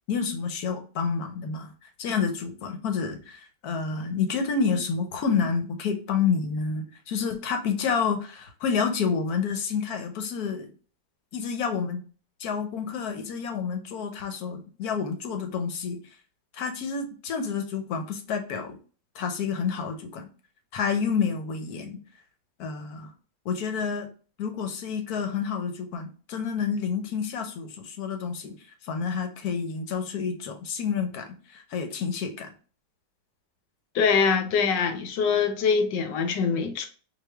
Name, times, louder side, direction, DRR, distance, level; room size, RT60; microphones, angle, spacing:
voice 1, 0.1-1.7 2.0-10.7 11.3-12.0 12.4-16.0 16.5-18.8 19.1-20.3 20.7-22.0 22.6-23.1 23.4-24.1 24.4-28.5 28.8-32.5, left 6 dB, 65° left, 1.2 m, -29 dB
voice 2, 33.9-36.9, left 5 dB, 80° left, 1.3 m, -23 dB
4.4 x 2.4 x 3.3 m
omnidirectional pair, 1.9 m